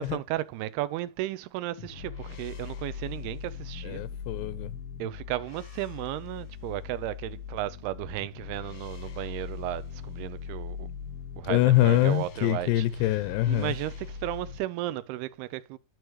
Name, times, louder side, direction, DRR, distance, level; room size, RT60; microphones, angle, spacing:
voice 1, 0.0-4.1 5.0-10.9 11.4-12.9 13.5-15.8, right 15 dB, 80° right, 2.5 m, -34 dB
sound 1, 1.8-14.6, left 6 dB, 65° left, 1.9 m, -40 dB
voice 2, 3.8-4.8 11.5-13.7, left 14 dB, 85° left, 2.7 m, -24 dB
12.0 x 4.7 x 3.0 m
omnidirectional pair, 4.7 m